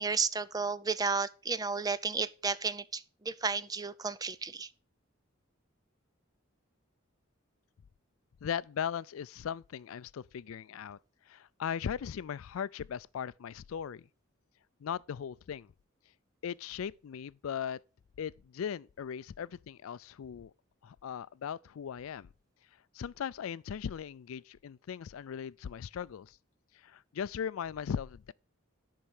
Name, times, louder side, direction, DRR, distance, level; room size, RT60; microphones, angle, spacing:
voice 1, 0.0-4.7, right 4 dB, 20° right, 0.5 m, -33 dB
voice 2, 8.4-11.0 11.3-14.1 14.8-15.7 16.4-17.8 18.2-20.5 20.8-22.3 22.9-26.4 26.7-28.3, left 8 dB, 80° left, 0.4 m, -38 dB
10.5 x 5.5 x 6.4 m
head